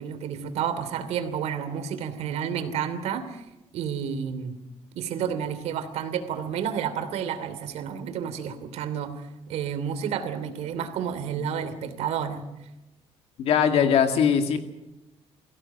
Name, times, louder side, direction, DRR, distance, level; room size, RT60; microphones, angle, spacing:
voice 1, 0.0-3.4 3.7-4.5 4.9-9.1 9.5-12.4, right 8 dB, 85° right, 9 dB, 2.9 m, -30 dB
voice 2, 13.4-14.6, left 7 dB, 70° left, 6 dB, 2.2 m, -21 dB
23.0 x 16.5 x 7.8 m, 0.98 s
cardioid pair, 155°, 11 cm